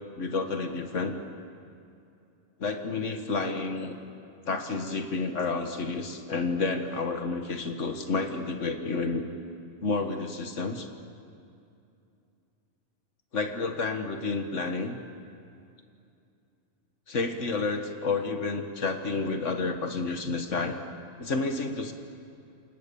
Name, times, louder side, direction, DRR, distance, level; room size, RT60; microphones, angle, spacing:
voice 1, 0.2-1.1 2.6-4.0 4.5-9.3 9.8-10.9 13.3-15.0 17.1-20.7 21.2-21.9, left 3 dB, 85° left, 5 dB, 1.9 m, -30 dB
29.0 x 26.0 x 7.0 m, 2.6 s
omnidirectional pair, 1.2 m